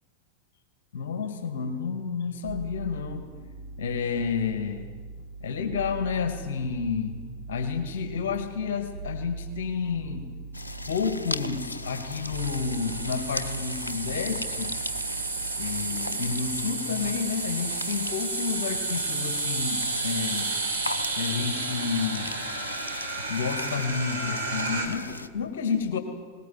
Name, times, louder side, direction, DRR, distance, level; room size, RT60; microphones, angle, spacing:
voice 1, 0.9-3.3 3.8-4.9 5.4-7.2 7.5-10.3 10.9-14.7 15.6-20.5 21.1-22.4 23.3-26.0, left 6 dB, 60° left, 5 dB, 2.3 m, -30 dB
sound 1, 2.4-19.9 20.2-21.0, right 3 dB, 60° right, 4.3 m, -42 dB
sound 2, 10.5-25.3, left 2 dB, 80° left, 1.0 m, -38 dB
sound 3, 12.3-24.9, right 3 dB, 80° right, 4.0 m, -32 dB
21.5 x 19.5 x 9.5 m, 1.5 s
figure-of-eight pair, 90°, 0 cm